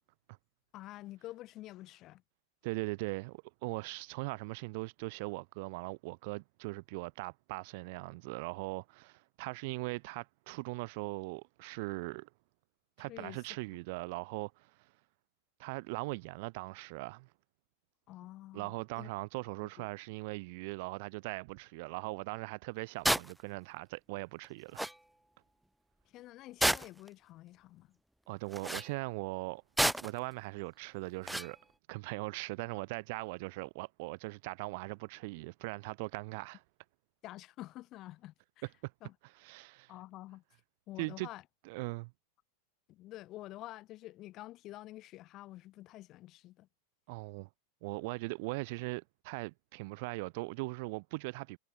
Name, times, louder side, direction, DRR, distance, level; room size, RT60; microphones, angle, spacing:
voice 1, 0.7-2.2 13.0-13.4 18.1-19.1 19.6-19.9 26.0-28.0 37.2-38.6 39.0-39.1 39.9-40.4 40.9-41.4 42.9-46.7, left 16 dB, 35° left, 4.8 m, -48 dB
voice 2, 2.6-12.3 13.0-14.9 15.6-17.3 18.5-24.8 28.3-31.6 31.9-36.6 38.8-38.9 39.4-39.9 41.0-41.3 41.7-42.1 47.1-47.5 47.8-51.6, right 26 dB, 50° right, 1.1 m, -40 dB
sound 1, 23.0-23.3 24.4-24.5 24.8-25.0 26.6-27.1 28.5-28.9 29.8-30.2 31.3-31.5, right 1 dB, 5° right, 0.6 m, -30 dB
figure-of-eight pair, 90°, 0 cm